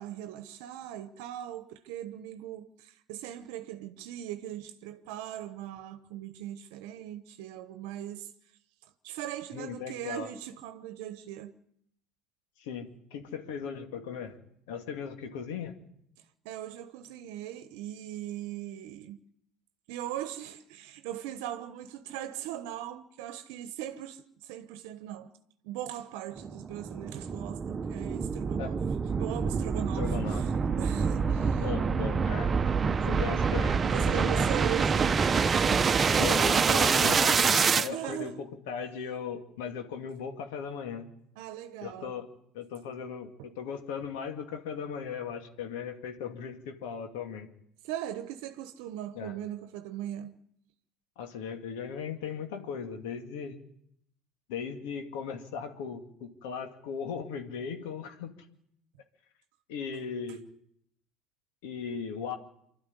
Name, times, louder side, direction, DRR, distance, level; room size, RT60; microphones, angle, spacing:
voice 1, 0.0-8.3 8.8-11.5 16.2-19.2 19.9-25.3 25.6-28.8 29.2-30.5 30.8-31.7 32.9-33.1 33.8-35.2 37.9-38.4 41.4-42.2 43.4-43.5 47.8-50.4, right 12 dB, 75° right, 1.0 m, -39 dB
voice 2, 9.5-10.3 12.6-14.4 14.7-15.7 28.6-28.7 29.9-30.4 31.5-32.5 33.0-34.4 36.1-41.1 41.8-42.3 42.5-47.5 49.1-49.3 51.2-53.6 54.5-58.3 59.7-60.4 61.6-62.4, left 6 dB, 80° left, 2.4 m, -37 dB
sound 1, 26.4-37.9, right 5 dB, 30° right, 0.9 m, -26 dB
24.5 x 12.5 x 9.7 m
supercardioid pair, 95°, 0 cm